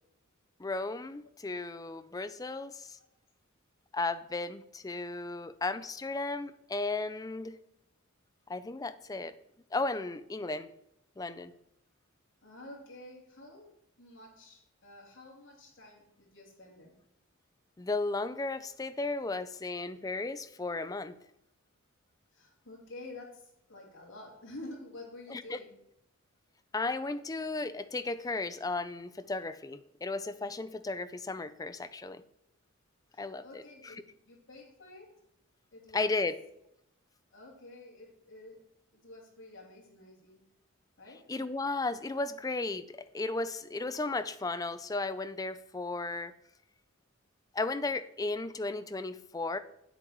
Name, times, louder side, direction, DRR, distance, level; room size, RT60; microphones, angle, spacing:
voice 1, 0.6-3.0 3.9-7.6 8.5-9.3 9.7-10.7 11.2-11.5 17.8-21.2 25.3-25.6 26.7-32.2 33.2-33.6 35.9-36.4 41.3-46.3 47.5-49.6, left 3 dB, 15° left, 12 dB, 0.4 m, -35 dB
voice 2, 12.4-16.9 18.6-18.7 22.3-25.8 33.1-35.1 35.7-36.3 37.3-38.6 38.9-40.4 41.0-41.2 42.2-42.3, left 2 dB, 60° left, -2 dB, 3.1 m, -50 dB
8.9 x 8.1 x 4.6 m, 0.78 s
head